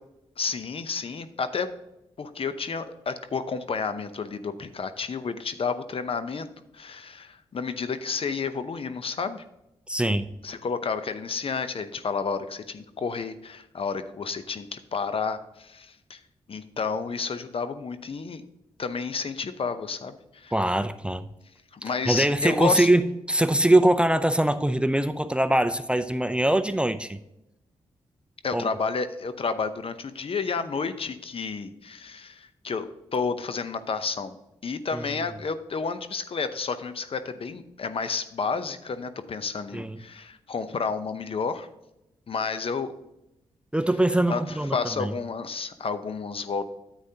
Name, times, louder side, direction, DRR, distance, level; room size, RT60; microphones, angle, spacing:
voice 1, 0.4-1.7 2.2-6.5 6.7-9.4 10.4-16.2 16.5-18.4 18.8-20.5 21.7-22.9 28.4-34.3 34.6-41.7 42.3-42.9 44.3-46.6, left 5 dB, 55° left, 11 dB, 0.7 m, -31 dB
voice 2, 9.9-10.3 20.5-21.3 22.1-27.2 28.5-28.7 34.9-35.0 39.7-40.0 43.7-45.1, right 1 dB, 10° right, 11 dB, 0.5 m, -23 dB
9.7 x 8.2 x 2.8 m, 0.89 s
cardioid pair, 50°, 12 cm